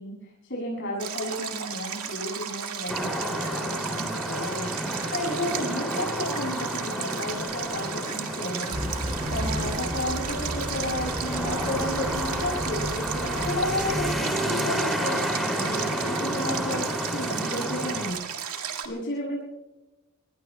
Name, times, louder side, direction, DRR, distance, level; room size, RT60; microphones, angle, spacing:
voice 1, 0.0-4.7 5.1-8.8 9.3-18.2 18.8-19.4, left 1 dB, 55° left, -3 dB, 7.4 m, -32 dB
Stream, 1.0-18.8, right 8 dB, 85° right, 2.2 m, -35 dB
sound 1, 2.9-18.1, equal, ahead, 2.8 m, -31 dB
sound 2, 8.7-14.1, right 1 dB, 30° right, 2.3 m, -33 dB
27.0 x 22.5 x 2.2 m, 0.99 s
head